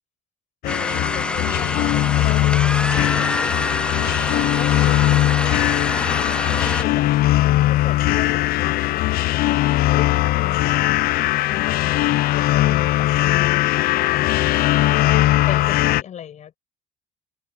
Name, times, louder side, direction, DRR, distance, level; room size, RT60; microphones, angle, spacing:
sound 1, 0.6-16.0, left 16 dB, 80° left, 0.6 m, -19 dB
voice 1, 0.6-4.0 4.3-6.2 6.6-7.1 7.7-10.2 10.4-10.8 11.5-14.4 15.5-16.6, left 9 dB, 50° left, 7.6 m, -37 dB
sound 2, 0.7-6.8, left 2 dB, 5° left, 0.4 m, -26 dB
cardioid pair, 140°, 15 cm